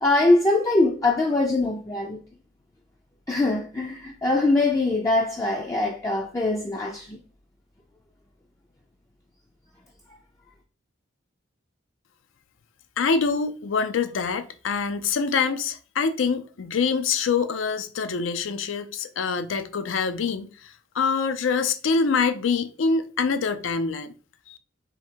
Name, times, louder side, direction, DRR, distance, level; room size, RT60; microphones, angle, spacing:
voice 1, 0.0-2.2 3.3-7.2, left 2 dB, 15° left, 0.3 m, -22 dB
voice 2, 13.0-24.1 24.5-24.6, left 5 dB, 85° left, 0.5 m, -25 dB
3.6 x 2.7 x 4.4 m
head